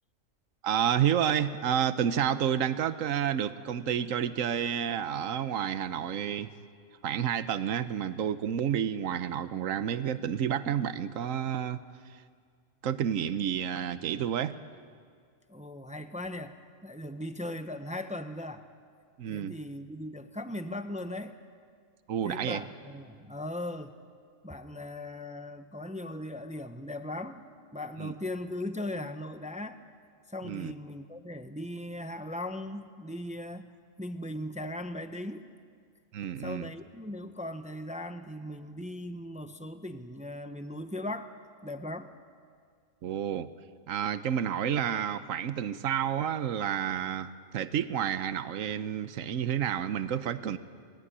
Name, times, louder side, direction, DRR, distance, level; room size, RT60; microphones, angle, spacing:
voice 1, 0.6-6.5 7.0-11.8 12.0-12.2 12.8-14.6 19.2-19.5 22.1-22.6 28.0-28.1 30.4-30.7 36.1-36.7 43.0-43.5 43.9-50.6, right 9 dB, 80° right, 12 dB, 1.2 m, -30 dB
voice 2, 15.5-16.5 16.8-18.6 19.3-21.4 22.2-23.9 24.4-27.4 27.7-29.8 30.3-33.7 34.0-35.5 36.4-41.3 41.6-42.1, left 1 dB, 5° right, 8 dB, 0.9 m, -38 dB
27.5 x 20.0 x 9.9 m, 2.1 s
omnidirectional pair, 1.4 m